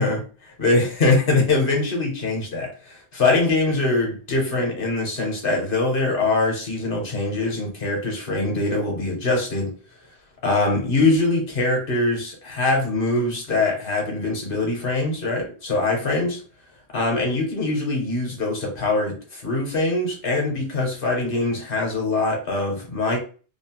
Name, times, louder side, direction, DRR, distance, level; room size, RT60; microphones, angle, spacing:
voice 1, 0.0-9.7 10.4-16.4 16.9-23.2, left 2 dB, 55° left, 0 dB, 1.0 m, -23 dB
2.7 x 2.0 x 2.8 m, 0.38 s
omnidirectional pair, 1.1 m